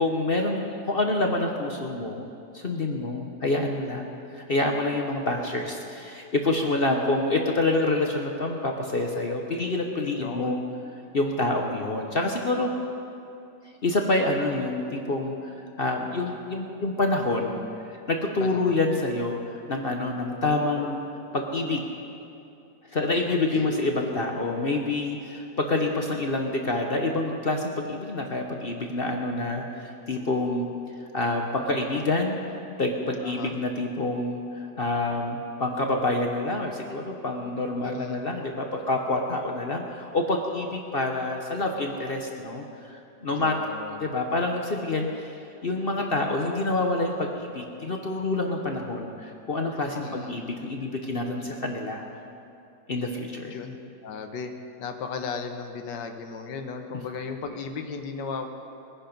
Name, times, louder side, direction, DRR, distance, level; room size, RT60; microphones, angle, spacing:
voice 1, 0.0-2.3 2.5-10.6 11.1-12.7 13.8-21.0 21.3-21.8 22.9-30.7 31.1-32.4 32.8-43.5 44.0-52.0 52.9-53.6, left 2 dB, 40° left, 2 dB, 0.9 m, -27 dB
voice 2, 10.2-10.6 18.4-18.8 20.4-20.9 23.3-23.8 33.2-33.6 37.8-38.3 43.3-44.1 50.0-50.4 53.5-53.8 54.0-54.5 54.8-58.5, left 5 dB, 75° left, 5 dB, 1.6 m, -36 dB
21.0 x 10.0 x 5.3 m, 2.7 s
omnidirectional pair, 1.9 m